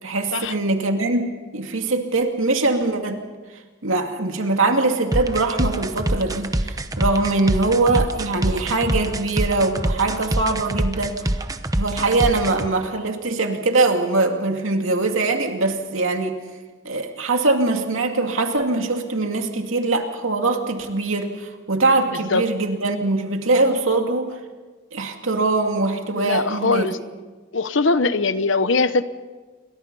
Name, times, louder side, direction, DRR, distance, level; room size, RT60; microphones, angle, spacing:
voice 1, 0.0-3.2 3.8-11.3 11.8-16.4 16.8-24.4 24.9-26.9, right 3 dB, 85° right, 4 dB, 2.5 m, -22 dB
sound 1, 5.1-12.7, right 1 dB, 15° right, 0.9 m, -24 dB
voice 2, 26.1-27.0 27.5-29.0, left 3 dB, 70° left, 13 dB, 1.0 m, -21 dB
28.5 x 22.5 x 5.5 m, 1.4 s
head